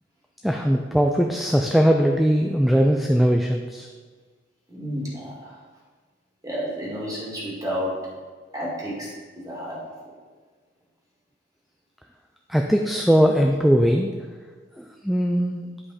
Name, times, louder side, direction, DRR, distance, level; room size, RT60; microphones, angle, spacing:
voice 1, 0.4-3.9 12.5-14.1 14.8-15.6, equal, ahead, 2 dB, 0.3 m, -20 dB
voice 2, 4.7-5.6 6.4-8.0 8.5-9.8, equal, 20° right, -5 dB, 2.1 m, -31 dB
9.7 x 5.2 x 4.2 m, 1.5 s
head